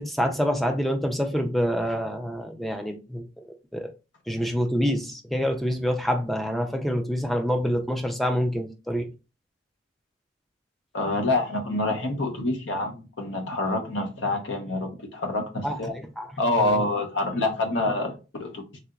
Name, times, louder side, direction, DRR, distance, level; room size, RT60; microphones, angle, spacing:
voice 1, 0.0-3.5 3.7-3.9 4.3-9.1 15.6-15.8 16.2-16.3 16.6-16.8, equal, ahead, 0.3 m, -26 dB
voice 2, 10.9-15.9 16.4-18.8, left 2 dB, 75° left, 0.7 m, -27 dB
3.3 x 2.8 x 2.4 m
head